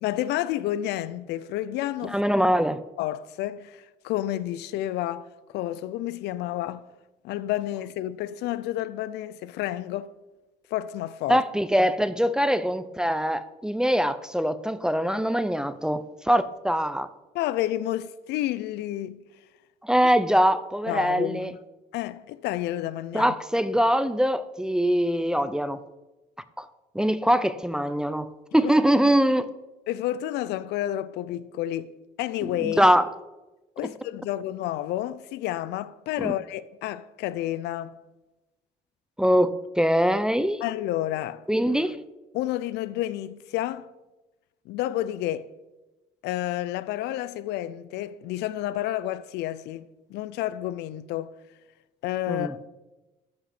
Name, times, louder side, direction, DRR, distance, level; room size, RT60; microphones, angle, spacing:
voice 1, 0.0-2.2 3.0-5.3 5.5-6.9 7.2-10.1 10.7-11.4 17.3-19.2 20.9-21.6 21.9-23.4 28.6-28.7 29.9-31.9 32.2-32.9 33.8-38.0 40.6-41.4 42.3-43.9 44.7-45.5 46.2-51.3 52.0-52.7, left 13 dB, 80° left, 0.4 m, -30 dB
voice 2, 2.0-2.8 11.3-17.1 19.8-21.5 23.1-25.8 26.6-26.7 26.9-29.5 32.6-33.1 36.2-36.3 39.2-40.6 41.5-42.0 52.3-52.5, equal, 5° right, 0.4 m, -23 dB
13.0 x 5.5 x 4.2 m
cardioid pair, 110°, 17 cm